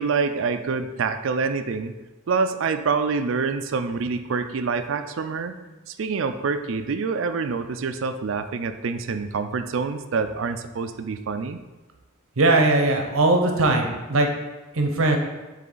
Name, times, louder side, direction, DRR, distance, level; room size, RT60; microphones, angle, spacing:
voice 1, 0.0-1.9 2.3-5.6 5.9-11.6, right 5 dB, 65° right, 9 dB, 0.4 m, -26 dB
voice 2, 12.4-14.3 14.7-15.2, right 2 dB, 85° right, 4 dB, 0.8 m, -20 dB
7.3 x 3.3 x 3.9 m, 1.1 s
head